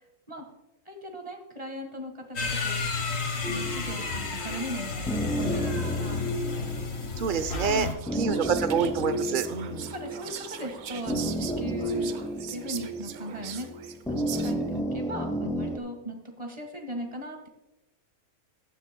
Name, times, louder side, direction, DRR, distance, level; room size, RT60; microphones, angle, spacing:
voice 1, 0.8-2.9 3.4-6.3 7.6-8.4 9.9-12.2 12.5-13.7 14.1-17.5, right 1 dB, 25° right, 4 dB, 1.7 m, -38 dB
sound 1, 2.4-7.9, left 4 dB, 60° left, 1.7 m, -32 dB
sound 2, 3.4-15.8, equal, 5° left, 0.4 m, -32 dB
voice 2, 7.2-9.9, right 6 dB, 50° right, 11 dB, 0.6 m, -28 dB
Whispering, 7.3-14.8, right 10 dB, 80° right, 1.1 m, -41 dB
14.5 x 10.5 x 2.2 m, 0.94 s
omnidirectional pair, 1.5 m